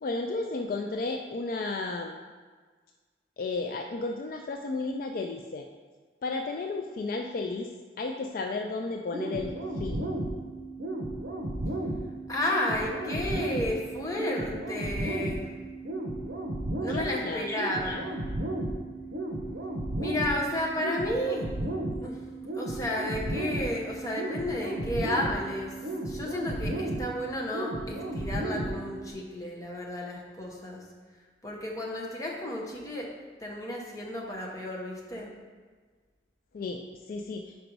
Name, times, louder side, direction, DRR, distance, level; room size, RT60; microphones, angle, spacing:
voice 1, 0.0-2.1 3.4-5.7 6.2-7.7 8.0-10.2 16.9-17.5 36.5-37.6, left 3 dB, 50° left, 3 dB, 0.3 m, -33 dB
sound 1, 9.1-29.1, right 1 dB, 70° right, 0.8 m, -34 dB
voice 2, 12.3-15.5 16.8-18.1 20.0-22.2 22.5-25.8 26.0-30.8 31.4-35.3, left 1 dB, 20° left, -2 dB, 0.9 m, -32 dB
5.2 x 5.1 x 4.6 m, 1.5 s
head